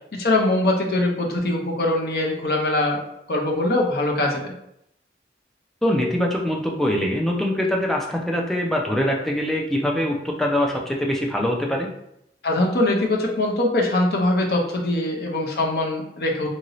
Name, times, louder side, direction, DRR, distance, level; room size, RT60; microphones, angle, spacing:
voice 1, 0.1-3.0 3.3-4.5 12.4-16.5, left 2 dB, 60° left, 0 dB, 0.6 m, -22 dB
voice 2, 5.8-11.9, left 1 dB, ahead, -1 dB, 0.3 m, -23 dB
2.9 x 2.6 x 2.9 m, 0.78 s
head